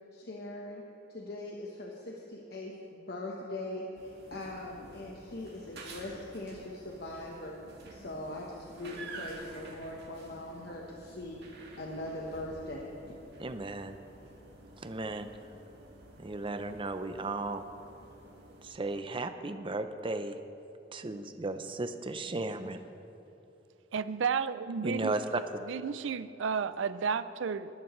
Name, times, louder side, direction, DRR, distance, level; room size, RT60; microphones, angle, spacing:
voice 1, 0.1-0.8 1.1-7.6 7.9-12.9, left 1 dB, 55° left, -2 dB, 1.1 m, -41 dB
sound 1, 3.9-18.7, right 2 dB, 60° right, 2.1 m, -50 dB
voice 2, 13.4-14.0 14.8-15.3 16.2-17.6 18.6-20.4 20.9-22.8 24.8-25.4, right 2 dB, 25° right, 9 dB, 0.6 m, -35 dB
voice 3, 23.9-27.7, right 6 dB, 75° right, 15 dB, 0.4 m, -33 dB
20.0 x 11.5 x 3.2 m, 2.8 s
head